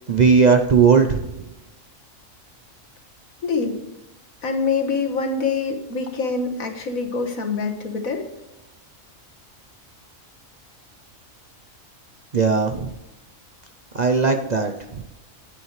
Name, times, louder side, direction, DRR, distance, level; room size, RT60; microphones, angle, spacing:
voice 1, 0.1-1.3 12.3-12.9 13.9-14.7, right 5 dB, 45° right, 5 dB, 0.6 m, -17 dB
voice 2, 3.4-3.8 4.4-8.3, left 4 dB, 90° left, 4 dB, 1.9 m, -25 dB
10.0 x 9.9 x 3.2 m, 0.97 s
omnidirectional pair, 1.4 m